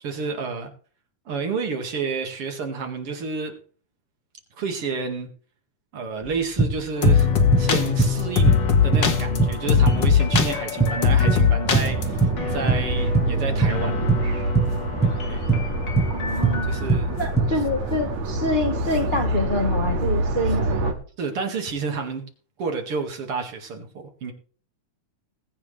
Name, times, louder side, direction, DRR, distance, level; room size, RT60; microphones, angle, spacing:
voice 1, 0.0-0.7 1.3-3.5 4.6-5.3 5.9-7.3 7.6-14.1 15.2-15.5 16.7-17.1 21.2-22.2 22.6-24.3, right 4 dB, 50° right, 4 dB, 2.7 m, -30 dB
sound 1, 6.2-6.3 6.6-7.3 7.5-8.2 8.5-8.7 8.9-9.1 9.4-10.1 10.3-11.5 11.7-12.4 12.7-13.3 13.6-13.8 14.1-14.8 15.0-15.7 16.0-16.2 16.4-16.6 16.9-17.5, right 4 dB, 5° right, 4.8 m, -21 dB
sound 2, 7.0-16.7, left 6 dB, 45° left, 1.7 m, -22 dB
sound 3, 11.6-20.9, right 1 dB, 70° right, 3.2 m, -26 dB
voice 2, 16.1-16.7 17.2-20.9, left 1 dB, 75° left, 1 dB, 0.4 m, -26 dB
20.5 x 8.9 x 3.3 m, 0.42 s
omnidirectional pair, 3.4 m